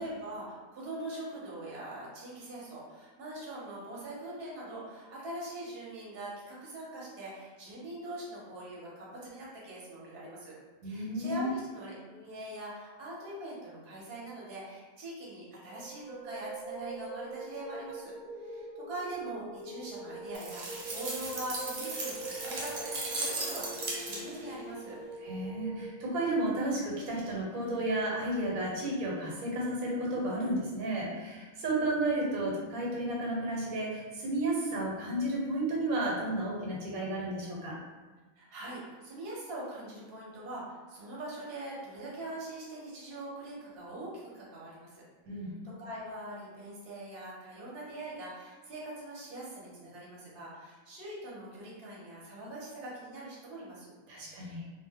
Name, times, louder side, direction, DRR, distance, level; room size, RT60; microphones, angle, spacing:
voice 1, 0.0-10.5 10.8-18.1 18.4-25.0 38.4-45.0 45.8-53.9 54.3-54.7, right 1 dB, 50° right, -5 dB, 0.9 m, -42 dB
voice 2, 10.8-11.6 25.2-37.8 45.3-45.5 54.1-54.7, right 1 dB, 90° right, -3 dB, 1.2 m, -32 dB
sound 1, 15.6-25.9, right 2 dB, 60° left, 0.5 m, -43 dB
sound 2, 20.3-24.5, right 2 dB, 70° right, 1.0 m, -37 dB
2.3 x 2.1 x 3.4 m, 1.3 s
omnidirectional pair, 1.4 m